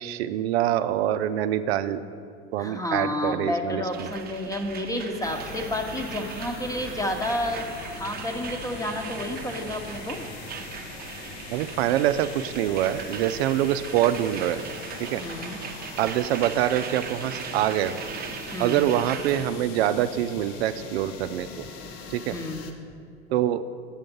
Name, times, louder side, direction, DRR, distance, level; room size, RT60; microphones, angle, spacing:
voice 1, 0.0-2.0 2.5-4.1 11.5-14.6 15.0-15.2 16.0-18.0 18.6-21.6 22.1-22.4 23.3-23.6, right 11 dB, 75° right, 11 dB, 0.5 m, -25 dB
voice 2, 2.6-10.2 15.2-15.6 18.5-18.9 22.3-22.7, left 1 dB, 10° left, 5 dB, 1.0 m, -30 dB
sound 1, 3.9-19.5, right 7 dB, 30° right, 0.7 m, -39 dB
sound 2, 5.2-22.7, left 4 dB, 65° left, 1.0 m, -41 dB
7.6 x 7.2 x 5.3 m, 2.3 s
hypercardioid pair, 85°, 32 cm